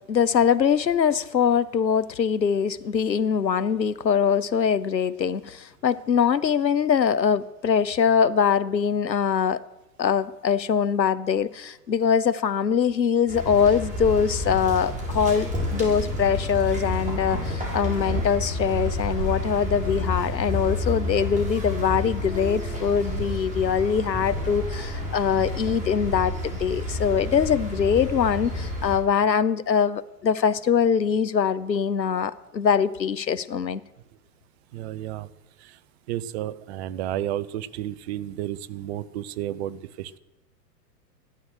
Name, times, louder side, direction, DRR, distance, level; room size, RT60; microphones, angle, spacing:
voice 1, 0.1-9.6 10.0-33.8, left 7 dB, 85° left, 18 dB, 0.9 m, -23 dB
sound 1, 13.3-29.0, left 1 dB, 15° right, 5.9 m, -29 dB
voice 2, 34.7-35.3 35.6-35.8 36.1-40.2, right 12 dB, 40° right, 16 dB, 0.9 m, -32 dB
16.0 x 12.0 x 6.4 m, 0.97 s
figure-of-eight pair, 105°, 50 cm